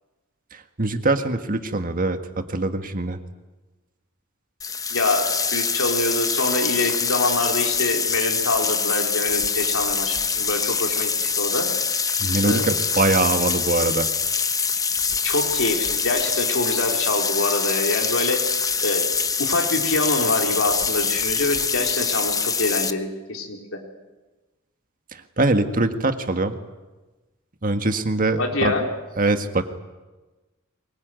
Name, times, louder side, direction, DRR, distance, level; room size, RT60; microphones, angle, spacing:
voice 1, 0.5-3.2 12.2-14.1 25.1-26.6 27.6-28.8 29.2-29.6, right 2 dB, 40° right, 7 dB, 1.7 m, -23 dB
sound 1, 4.6-22.9, left 5 dB, 15° left, 0.9 m, -24 dB
voice 2, 4.9-11.1 11.4-11.7 12.4-12.7 15.2-18.4 18.8-19.1 19.4-23.8 28.4-28.8, left 2 dB, 85° left, 2 dB, 4.1 m, -25 dB
23.0 x 22.0 x 9.5 m, 1.2 s
head